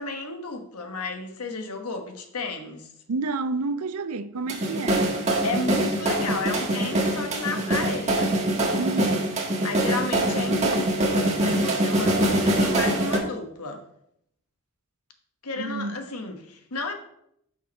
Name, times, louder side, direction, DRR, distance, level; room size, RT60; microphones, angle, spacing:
voice 1, 0.0-2.9 5.4-8.4 9.6-13.8 15.4-16.9, left 3 dB, 90° left, 1.2 m, -32 dB
voice 2, 3.1-5.2 8.7-9.3 15.6-16.0, right 3 dB, 85° right, 0.5 m, -30 dB
sound 1, 4.5-13.2, right 1 dB, 30° right, 1.3 m, -24 dB
6.1 x 5.8 x 5.2 m
head